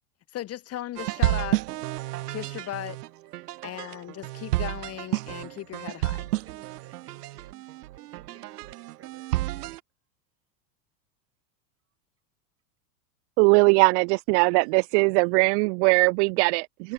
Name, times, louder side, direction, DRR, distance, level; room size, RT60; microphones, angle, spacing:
voice 1, 0.3-1.6 2.3-3.0 3.6-6.3, left 13 dB, 30° left, 1.9 m, -36 dB
sound 1, 1.0-9.8, right 17 dB, 80° right, 1.8 m, -31 dB
voice 2, 6.4-9.7, right 10 dB, 30° right, 7.8 m, -56 dB
voice 3, 13.4-16.9, right 34 dB, 50° right, 0.7 m, -20 dB
supercardioid pair, 135°, 46 cm